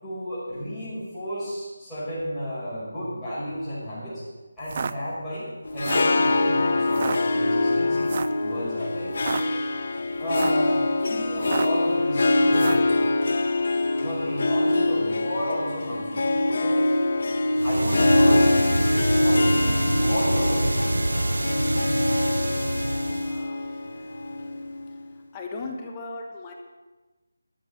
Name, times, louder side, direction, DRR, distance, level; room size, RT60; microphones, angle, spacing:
voice 1, 0.0-4.2 4.6-5.5 5.7-8.1 8.4-9.5 10.2-10.8 11.1-13.0 13.9-16.9 17.6-18.9 19.2-20.8, equal, ahead, -16 dB, 5.3 m, -33 dB
sound 1, 4.6-4.9 5.7-6.1 6.9-7.2 8.1-8.4 9.1-9.4 10.2-10.6 11.4-11.8 12.5-12.9, right 6 dB, 35° right, 0.4 m, -31 dB
Harp, 5.6-25.0, left 2 dB, 50° left, 1.0 m, -24 dB
sound 2, 17.6-23.5, right 2 dB, 80° right, 0.6 m, -26 dB
voice 2, 23.2-23.6 25.3-26.5, left 3 dB, 20° left, 1 dB, 1.2 m, -37 dB
12.5 x 7.2 x 8.4 m, 1.2 s
figure-of-eight pair, 165°, 0 cm